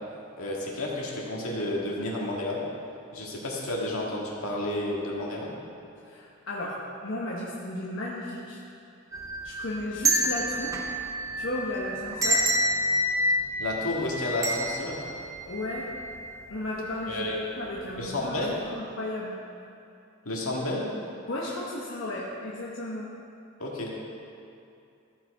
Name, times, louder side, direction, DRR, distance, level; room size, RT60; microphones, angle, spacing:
voice 1, 0.4-2.6 3.1-5.5 13.6-15.0 17.1-17.4 18.0-18.6 20.3-20.9 23.6-23.9, left 1 dB, 85° left, -3 dB, 1.8 m, -31 dB
voice 2, 6.0-8.6 9.4-10.8 11.4-12.5 15.4-15.9 16.5-17.3 17.6-19.3 21.3-23.1, left 1 dB, 60° left, -5 dB, 1.1 m, -34 dB
sound 1, 9.1-16.3 16.6-16.7 17.7-18.0 18.3-18.5, right 1 dB, 15° right, 0.7 m, -28 dB
14.0 x 5.9 x 4.8 m, 2.6 s
head